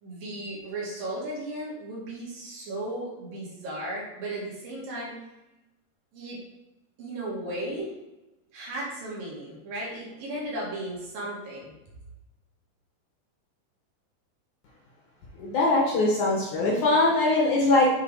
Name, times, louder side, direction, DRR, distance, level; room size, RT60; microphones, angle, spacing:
voice 1, 0.0-5.2 6.1-6.4 7.0-7.9 8.5-11.7, right 1 dB, 60° right, -5 dB, 3.8 m, -35 dB
voice 2, 15.4-17.9, left 2 dB, 60° left, -3 dB, 2.5 m, -22 dB
8.1 x 4.9 x 4.7 m, 1.0 s
omnidirectional pair, 4.6 m